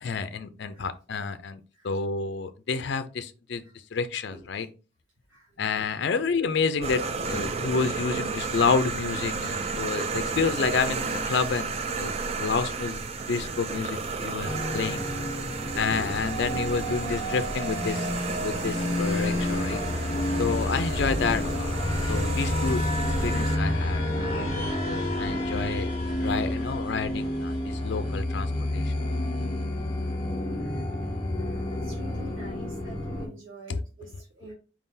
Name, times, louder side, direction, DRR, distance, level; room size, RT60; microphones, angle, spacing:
voice 1, 0.0-1.6 1.8-3.6 3.9-4.7 5.6-15.1 15.8-18.1 18.4-19.8 20.4-21.8 22.1-22.9 23.2-25.9 26.2-28.9 33.7-33.8, left 5 dB, 60° left, 11 dB, 0.4 m, -29 dB
sound 1, 6.8-23.6, right 4 dB, 30° right, 0.3 m, -33 dB
voice 2, 7.2-7.5 12.1-12.2 13.1-13.2 15.6-16.1 16.5-16.6 20.0-20.3 22.0-22.1 25.3-25.4 28.7-28.9 30.6-30.8 31.4-34.5, equal, 85° right, -4 dB, 1.6 m, -45 dB
sound 2, 14.4-33.3, left 1 dB, 30° left, 1.3 m, -29 dB
4.7 x 3.7 x 2.6 m, 0.34 s
head